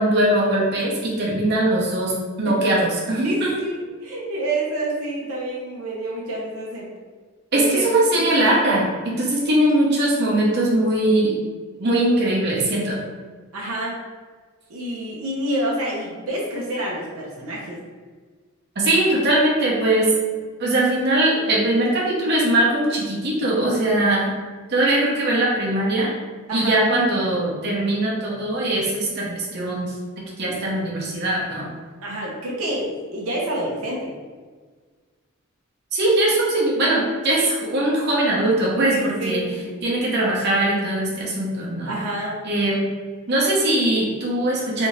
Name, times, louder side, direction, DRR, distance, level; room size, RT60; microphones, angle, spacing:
voice 1, 0.0-2.1 2.4-3.5 7.5-11.4 11.8-13.0 18.8-20.1 20.6-24.3 24.7-26.1 26.5-29.9 30.4-31.7 35.9-39.4 39.8-42.0 42.5-42.8 43.3-44.9, right 1 dB, 50° right, -4 dB, 0.8 m, -21 dB
voice 2, 3.2-6.9 7.5-7.9 8.2-8.3 13.5-13.9 14.7-17.8 26.5-26.8 30.5-30.6 32.0-34.1 38.9-39.7 41.9-42.3, right 1 dB, 80° right, -4 dB, 0.7 m, -28 dB
3.3 x 2.7 x 3.1 m, 1.5 s
head